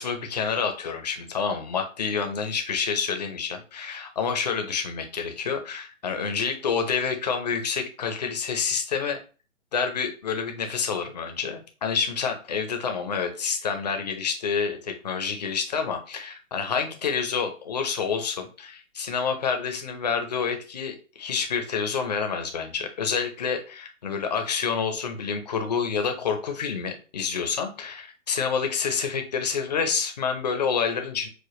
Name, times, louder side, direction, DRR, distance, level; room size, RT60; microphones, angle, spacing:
voice 1, 0.0-9.2 9.7-31.3, left 6 dB, 35° left, 5 dB, 0.4 m, -28 dB
4.8 x 2.1 x 3.0 m, 0.36 s
hypercardioid pair, 160°, 40 cm